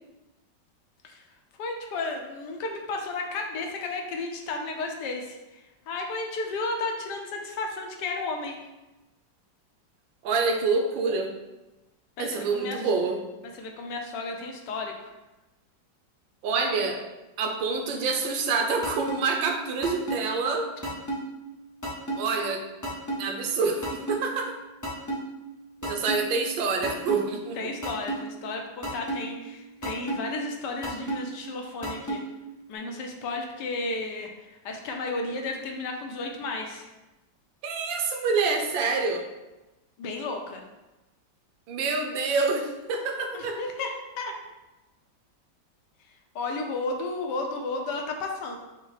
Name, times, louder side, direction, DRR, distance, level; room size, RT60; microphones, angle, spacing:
voice 1, 1.6-8.6 12.2-12.8 13.5-15.1 27.6-32.2 32.7-36.9 40.0-40.6 43.3-44.3 46.3-48.5, left 3 dB, 75° left, 2 dB, 1.2 m, -33 dB
voice 2, 10.2-11.3 12.2-13.2 16.4-17.0 17.4-20.7 22.2-22.6 23.2-24.6 25.8-27.7 37.6-39.3 41.7-43.6, right 4 dB, 90° right, 3 dB, 1.4 m, -27 dB
sound 1, 18.8-19.2 19.8-20.2 20.8-21.2 21.8-22.2 22.8-23.2 23.8-24.2 24.8-25.2 25.8-26.2 26.8-27.2 27.8-28.2 28.8-29.2 29.8-30.2 30.8-31.2 31.8-32.2, right 1 dB, 30° left, 0.3 m, -30 dB
6.0 x 2.1 x 4.0 m, 1.0 s
omnidirectional pair, 2.0 m